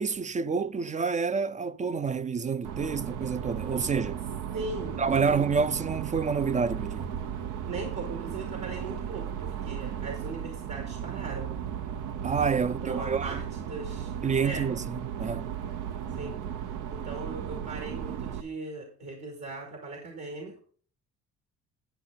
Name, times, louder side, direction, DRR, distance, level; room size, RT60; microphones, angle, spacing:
voice 1, 0.0-4.2 5.0-7.1 12.2-13.4 14.2-15.5, right 5 dB, 25° right, 0.4 m, -28 dB
sound 1, 2.6-18.4, right 9 dB, 85° right, 0.8 m, -35 dB
voice 2, 4.5-5.5 7.7-11.6 12.6-14.1 14.4-14.7 16.1-16.4 16.9-20.6, right 3 dB, 65° right, 2.8 m, -39 dB
10.0 x 8.6 x 3.9 m
cardioid pair, 90°, 30 cm